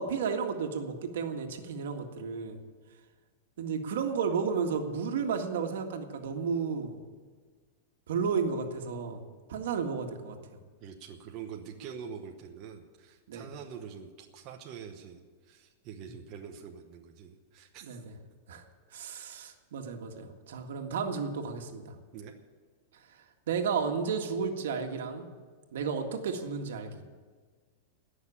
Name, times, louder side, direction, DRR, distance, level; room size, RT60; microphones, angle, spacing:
voice 1, 0.0-2.6 3.6-7.0 8.1-9.2 9.5-10.4 13.3-13.5 17.8-18.1 18.5-18.6 18.9-22.0 23.5-25.3 25.7-27.0, right 5 dB, 75° right, 4 dB, 1.8 m, -32 dB
voice 2, 10.8-18.0 22.1-22.3, right 7 dB, 30° right, 2 dB, 0.9 m, -45 dB
17.5 x 6.6 x 9.9 m, 1.5 s
supercardioid pair, 170°, 0 cm